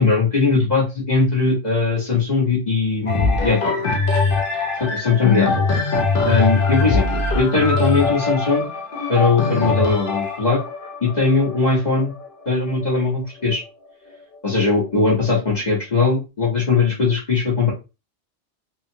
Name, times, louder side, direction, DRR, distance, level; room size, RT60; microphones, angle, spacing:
voice 1, 0.0-3.8 4.8-5.6 6.2-8.7 9.1-10.6 11.0-12.1 12.4-13.6 14.4-17.7, left 4 dB, 40° left, -5 dB, 1.2 m, -19 dB
sound 1, 3.1-12.8 13.5-13.6, left 4 dB, 55° left, 0.7 m, -22 dB
2.8 x 2.3 x 2.7 m, 0.28 s
omnidirectional pair, 1.2 m